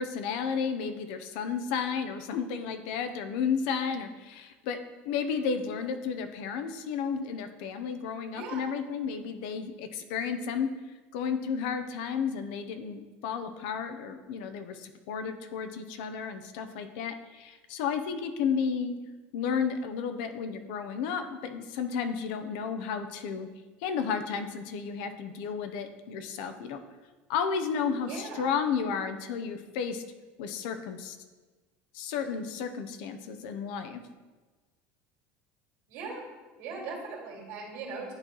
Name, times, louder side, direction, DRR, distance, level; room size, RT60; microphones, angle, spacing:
voice 1, 0.0-4.8 5.0-10.7 11.1-19.0 19.3-23.5 23.8-26.8 27.3-30.0 30.4-31.2 31.9-34.0, left 6 dB, 70° left, 9 dB, 0.6 m, -32 dB
voice 2, 28.1-28.5 35.9-36.2 36.6-38.1, right 4 dB, 65° right, -2 dB, 2.1 m, -39 dB
10.5 x 3.9 x 3.0 m, 1.3 s
cardioid pair, 165°, 6 cm